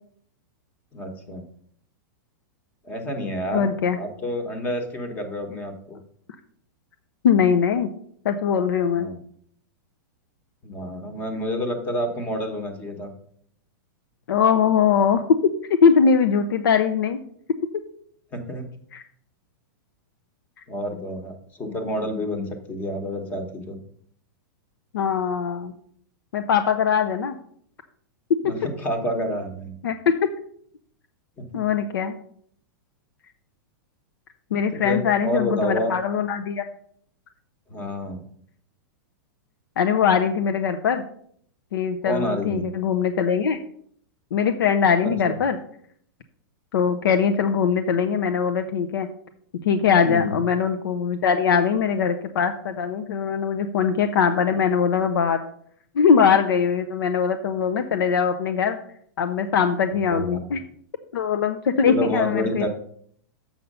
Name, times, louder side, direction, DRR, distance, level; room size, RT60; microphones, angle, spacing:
voice 1, 0.9-1.4 2.8-3.7 3.9-6.0 8.9-9.2 10.6-13.1 18.3-18.7 20.7-23.8 28.4-29.7 31.4-31.6 34.7-35.9 37.7-38.2 42.0-42.7 45.3-45.4 50.0-50.3 60.1-60.5 61.9-62.7, equal, 15° left, 5 dB, 1.0 m, -29 dB
voice 2, 3.5-4.0 7.2-7.9 8.2-9.1 14.3-15.2 15.8-17.2 18.9-19.0 24.9-25.7 26.3-27.4 29.8-30.0 31.5-32.1 34.5-36.7 39.8-41.0 41.7-43.6 44.3-45.6 46.7-49.1 49.6-55.4 55.9-58.8 59.2-60.6 61.1-62.7, left 7 dB, 85° left, 7 dB, 0.7 m, -21 dB
7.3 x 5.7 x 5.4 m, 0.63 s
supercardioid pair, 170°, 11 cm